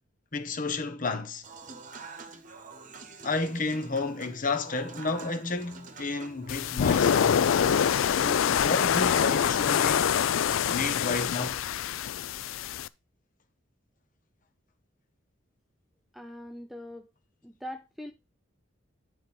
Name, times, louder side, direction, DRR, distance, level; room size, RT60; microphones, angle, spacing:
voice 1, 0.3-1.4 3.2-7.5 8.0-10.1 10.7-11.6, left 3 dB, 40° left, 1.1 m, -31 dB
Human voice / Acoustic guitar / Piano, 1.4-9.4, right 4 dB, 40° right, 1.1 m, -47 dB
sound 1, 6.5-12.9, left 8 dB, 80° left, 0.4 m, -25 dB
voice 2, 16.1-17.1 17.4-18.1, left 1 dB, ahead, 0.6 m, -41 dB
9.7 x 4.6 x 4.3 m
head